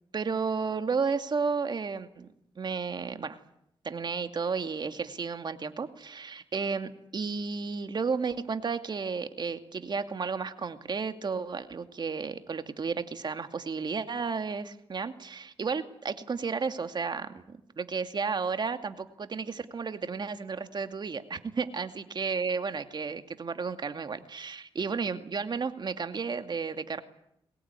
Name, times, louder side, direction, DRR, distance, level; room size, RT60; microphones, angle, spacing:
voice 1, 0.1-2.3 2.6-3.4 3.8-27.0, right 5 dB, 45° right, 8 dB, 2.4 m, -33 dB
23.5 x 19.5 x 9.8 m, 0.74 s
cardioid pair, 75°, 10 cm